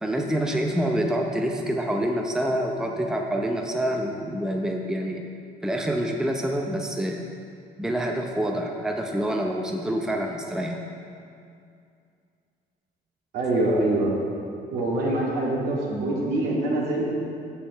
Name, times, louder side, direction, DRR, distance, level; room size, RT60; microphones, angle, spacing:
voice 1, 0.0-5.2 5.6-7.2 7.8-10.8, right 1 dB, 5° right, 1 dB, 0.6 m, -27 dB
voice 2, 13.3-14.1 14.7-17.1, right 1 dB, 75° right, -4 dB, 2.3 m, -24 dB
6.9 x 5.5 x 7.0 m, 2.4 s
cardioid pair, 110°, 17 cm